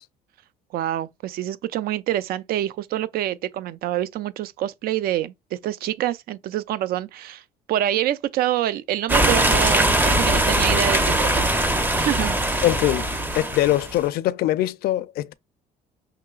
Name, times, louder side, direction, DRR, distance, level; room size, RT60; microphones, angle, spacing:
voice 1, 0.7-7.4 7.7-11.5 12.0-12.4, right 12 dB, 65° right, 0.4 m, -26 dB
sound 1, 9.1-14.0, right 1 dB, 10° right, 0.6 m, -21 dB
voice 2, 12.6-13.1 13.3-15.3, left 14 dB, 65° left, 0.4 m, -22 dB
5.7 x 2.9 x 2.3 m
cardioid pair, 110°, 17 cm